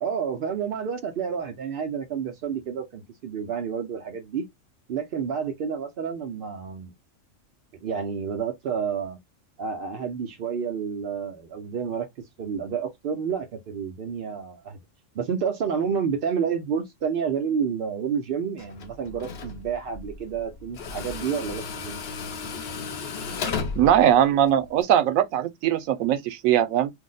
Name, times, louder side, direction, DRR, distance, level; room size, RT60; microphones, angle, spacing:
voice 1, 0.0-4.4 4.9-6.9 7.8-9.2 9.6-14.8 15.1-22.0, right 7 dB, 60° right, 0.6 m, -29 dB
Tools, 18.6-24.8, left 5 dB, 60° left, 0.8 m, -35 dB
voice 2, 23.8-26.9, right 10 dB, 85° right, 1.0 m, -20 dB
2.6 x 2.1 x 3.7 m
omnidirectional pair, 1.4 m